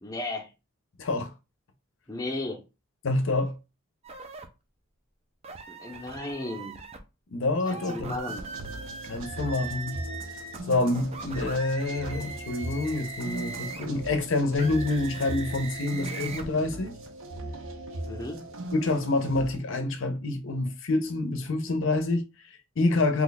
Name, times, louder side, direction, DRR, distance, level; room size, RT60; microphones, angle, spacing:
voice 1, 0.0-0.5 2.1-2.6 5.7-6.8 7.7-8.5 18.1-18.4, left 2 dB, 15° left, 0.6 m, -35 dB
voice 2, 1.0-1.3 3.0-3.6 7.3-8.3 9.0-10.0 10.7-16.9 18.7-23.2, left 2 dB, 70° left, 0.6 m, -27 dB
sound 1, 4.0-4.5 5.4-7.0 7.6-14.0 14.5-16.5, right 4 dB, 30° right, 0.4 m, -40 dB
sound 2, 8.3-19.6, right 2 dB, 70° right, 0.7 m, -39 dB
3.0 x 2.3 x 3.9 m
head